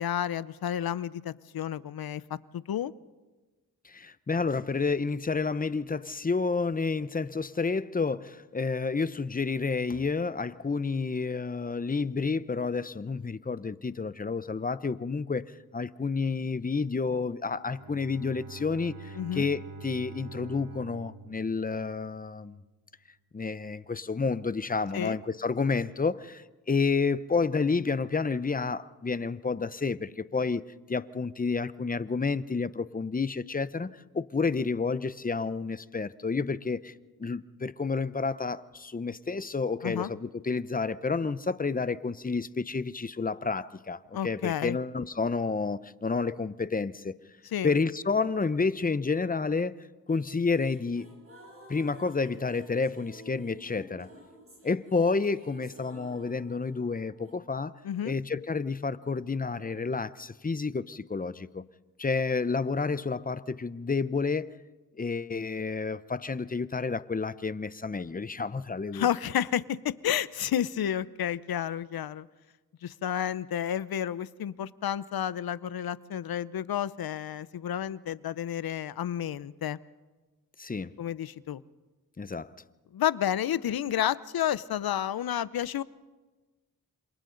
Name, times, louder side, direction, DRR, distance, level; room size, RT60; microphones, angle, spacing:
voice 1, 0.0-2.9 19.1-19.5 24.9-25.1 39.8-40.1 44.1-44.8 47.5-47.7 57.8-58.1 68.9-72.3 72.8-79.8 81.0-81.6 82.9-85.8, left 10 dB, 75° left, 0.7 m, -31 dB
voice 2, 3.8-22.6 23.3-30.6 30.9-36.9 37.2-47.1 47.6-49.8 50.1-51.1 51.7-54.1 54.6-57.7 58.0-61.6 62.0-64.5 64.9-69.1 80.6-80.9 82.2-82.5, left 4 dB, 25° left, 0.7 m, -30 dB
Bowed string instrument, 17.6-22.4, right 3 dB, 80° right, 3.6 m, -46 dB
sound 1, 50.1-57.3, equal, 35° right, 7.0 m, -51 dB
28.0 x 27.0 x 3.9 m
cardioid pair, 75°, 36 cm